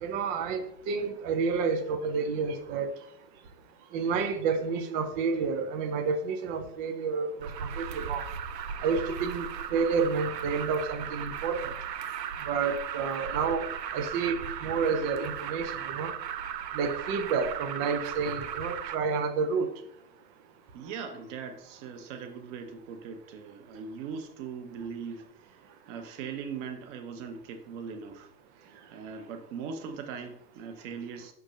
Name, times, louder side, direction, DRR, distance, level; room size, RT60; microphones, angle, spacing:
voice 1, 0.0-2.9 3.9-8.2 8.8-11.7 12.5-13.7 13.9-16.1 16.7-19.7, right 5 dB, 20° right, 9 dB, 0.4 m, -30 dB
voice 2, 2.6-3.1 3.7-4.1 20.7-31.3, right 6 dB, 45° right, 6 dB, 1.2 m, -41 dB
Alarm, 7.4-19.0, right 8 dB, 85° right, 0.6 m, -37 dB
6.5 x 6.0 x 2.6 m, 0.71 s
hypercardioid pair, 115°, 49 cm